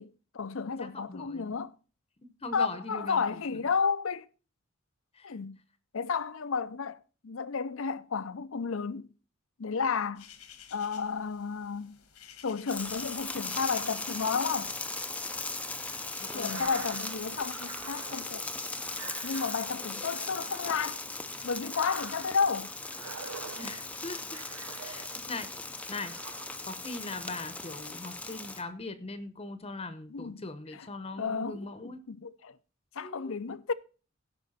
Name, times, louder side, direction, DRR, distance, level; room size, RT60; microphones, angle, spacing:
voice 1, 0.0-1.7 2.5-4.3 5.2-5.6 5.9-9.1 9.6-10.2 10.7-12.0 12.4-14.7 16.3-18.5 19.2-21.0 21.4-22.7 30.1-30.4 30.7-30.9 31.2-32.6 32.9-33.7, left 5 dB, 60° left, 0.6 m, -32 dB
voice 2, 0.8-1.5 2.2-3.6 5.2-5.3 16.2-16.5 23.5-24.4 24.8-25.6 25.9-26.2 26.7-32.0 33.0-33.4, left 3 dB, 25° left, 0.9 m, -41 dB
sound 1, 10.2-17.6, left 9 dB, 85° left, 1.5 m, -54 dB
sound 2, 12.7-28.6, left 3 dB, 5° left, 0.5 m, -38 dB
sound 3, 16.3-25.4 25.8-26.9, right 7 dB, 85° right, 0.7 m, -47 dB
16.5 x 5.7 x 4.2 m
head